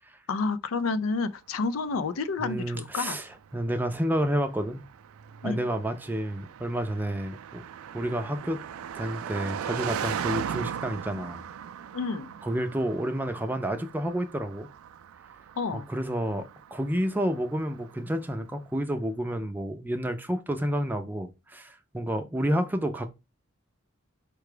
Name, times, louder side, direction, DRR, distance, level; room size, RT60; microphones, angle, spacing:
voice 1, 0.3-3.2 5.4-5.6 11.9-12.3 15.6-15.9, left 4 dB, 80° left, 0.4 m, -29 dB
Car passing by, 1.9-18.3, right 8 dB, 85° right, 0.3 m, -39 dB
voice 2, 2.4-4.8 5.4-7.6 7.9-8.6 9.0-11.4 12.4-14.7 15.7-16.5 16.7-23.1, right 1 dB, 10° right, 0.4 m, -30 dB
4.6 x 2.3 x 4.8 m
head